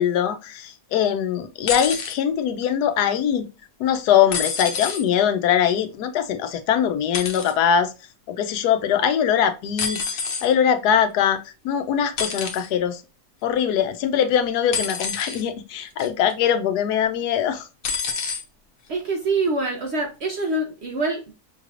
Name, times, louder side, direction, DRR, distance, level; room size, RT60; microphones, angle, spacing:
voice 1, 0.0-3.5 3.8-7.9 8.3-13.0 13.4-17.7, left 8 dB, 90° left, 1.2 m, -22 dB
sound 1, 1.7-2.2 4.3-5.0 7.1-7.5 9.8-10.5 12.2-12.7 14.7-15.4 16.0-16.3 17.8-18.4 19.4-19.5, left 5 dB, 70° left, 1.2 m, -27 dB
voice 2, 18.9-21.3, right 2 dB, 55° right, 0.8 m, -25 dB
5.7 x 3.2 x 2.4 m
omnidirectional pair, 1.6 m